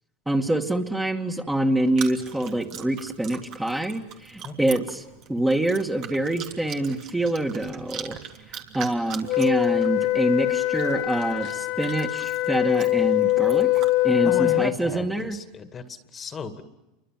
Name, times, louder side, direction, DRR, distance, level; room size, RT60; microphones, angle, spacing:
voice 1, 0.3-5.0 5.3-8.2 8.5-13.7 14.0-15.4, right 1 dB, 10° right, 4 dB, 2.4 m, -26 dB
Chewing mastication, 1.8-13.9, right 8 dB, 50° right, 3.1 m, -42 dB
Wind instrument woodwind instrument, 9.3-14.8, left 19 dB, 60° left, 1.4 m, -23 dB
voice 2, 14.2-16.6, left 5 dB, 30° left, 9 dB, 2.4 m, -35 dB
29.0 x 24.0 x 7.7 m, 0.98 s
hypercardioid pair, 95°, 0 cm